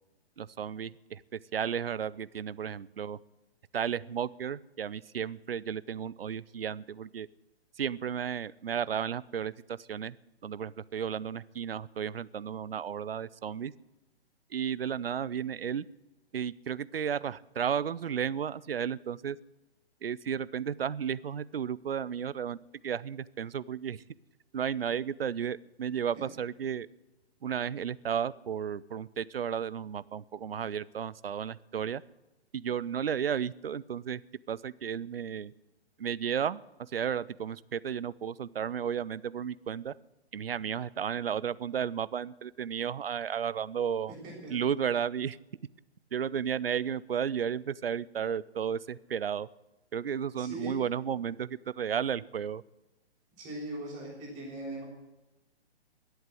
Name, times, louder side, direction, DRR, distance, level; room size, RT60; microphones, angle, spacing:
voice 1, 0.4-3.2 3.7-7.3 7.8-10.2 10.4-13.7 14.5-15.8 16.3-19.4 20.0-22.6 22.8-24.0 24.5-26.9 27.4-32.0 32.5-34.2 34.5-35.5 36.0-39.9 40.3-44.1 44.5-45.4 46.1-49.5 49.9-52.6, right 8 dB, 60° right, 19 dB, 0.6 m, -33 dB
voice 2, 44.1-44.5 50.4-50.7 53.4-54.8, right 1 dB, 25° right, -8 dB, 6.2 m, -40 dB
21.5 x 8.1 x 7.8 m, 1.0 s
figure-of-eight pair, 130°, 33 cm